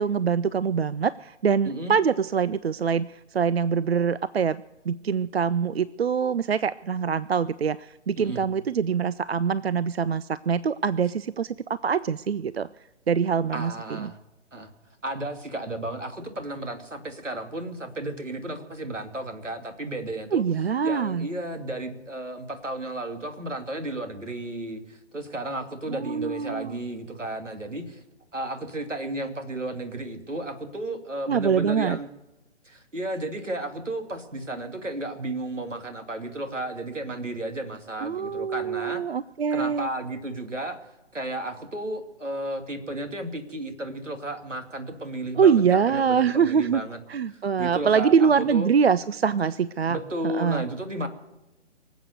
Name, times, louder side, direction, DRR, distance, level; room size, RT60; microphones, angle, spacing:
voice 1, 0.0-12.7 13.1-13.7 14.0-14.1 20.3-21.3 25.9-26.7 31.3-32.0 38.0-39.9 45.4-46.8 47.1-50.0 50.2-50.6, right 6 dB, 60° right, 18 dB, 0.5 m, -24 dB
voice 2, 1.7-2.0 8.2-8.4 13.5-14.2 14.5-14.7 15.0-20.4 20.8-28.0 28.3-32.1 32.6-39.0 39.5-40.8 41.1-47.0 47.3-48.7 49.9-51.1, right 1 dB, 85° right, 6 dB, 2.7 m, -33 dB
24.5 x 8.2 x 6.7 m, 0.98 s
figure-of-eight pair, 145°, 36 cm